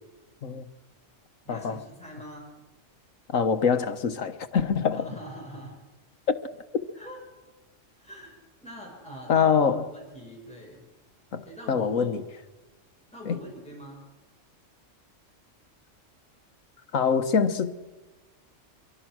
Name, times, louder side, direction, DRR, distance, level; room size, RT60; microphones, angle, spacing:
voice 1, 1.4-2.5 4.9-5.8 7.0-7.2 8.0-10.8 11.4-12.2 13.1-14.1, equal, 5° left, 6.0 m, -43 dB
voice 2, 3.3-5.1 6.3-6.4 9.3-9.9 11.3-12.2 13.3-13.4 16.9-17.7, left 6 dB, 85° left, 1.6 m, -24 dB
25.0 x 23.5 x 6.3 m
omnidirectional pair, 1.3 m